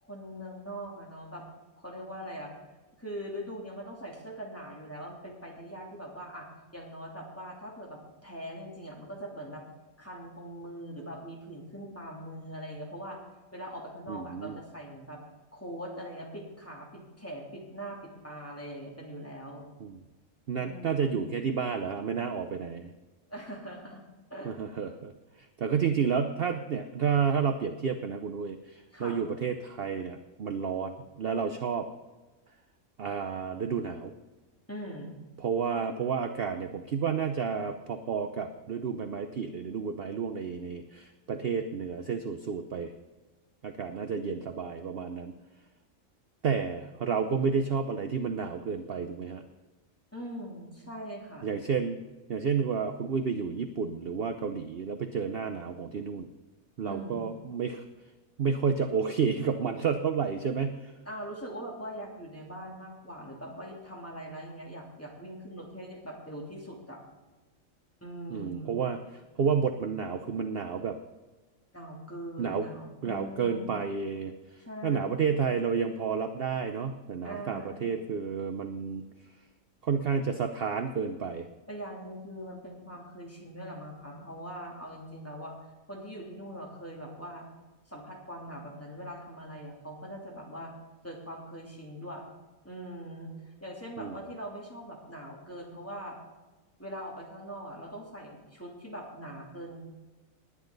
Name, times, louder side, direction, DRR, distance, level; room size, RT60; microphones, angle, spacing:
voice 1, 0.0-1.4 1.8-2.5 3.0-9.6 10.0-13.2 13.5-15.2 15.5-19.6 20.6-21.3 23.3-24.0 24.3-24.5 28.9-29.2 34.7-35.1 50.1-51.5 56.8-57.2 61.0-67.0 68.0-68.8 71.7-73.8 74.6-75.3 77.2-78.0 81.7-85.6 85.9-87.5 87.9-90.7 91.0-92.2 92.6-96.2 96.8-99.8, equal, 10° left, -2 dB, 3.0 m, -42 dB
voice 2, 14.1-14.6 19.8-20.0 20.5-22.9 24.4-25.1 25.4-31.9 33.0-34.1 35.4-42.9 43.6-45.3 46.4-49.4 51.4-52.0 52.3-56.3 56.8-57.8 58.4-60.9 68.3-69.0 69.4-71.0 72.4-72.7 73.0-79.0 79.8-81.5 94.0-94.2, right 6 dB, 55° right, 7 dB, 0.8 m, -31 dB
19.5 x 10.0 x 4.0 m, 1.2 s
omnidirectional pair, 1.4 m